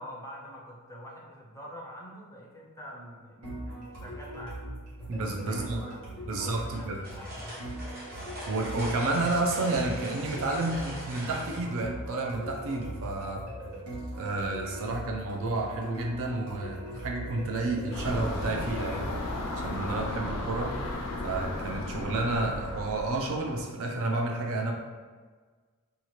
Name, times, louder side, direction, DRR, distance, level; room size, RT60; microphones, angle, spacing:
voice 1, 0.0-4.6 5.4-8.0, equal, 15° left, -3 dB, 0.5 m, -46 dB
sound 1, 3.4-20.1, right 1 dB, 80° right, 1.1 m, -40 dB
voice 2, 5.1-5.8 6.3-7.0 8.5-13.4 14.1-19.1 19.6-20.7 21.2-24.7, right 2 dB, 65° right, 0 dB, 0.5 m, -30 dB
sound 2, 6.7-11.6, equal, 40° right, 0.8 m, -41 dB
sound 3, 17.9-23.6, left 1 dB, 90° left, 0.5 m, -35 dB
2.8 x 2.4 x 3.0 m, 1.5 s
head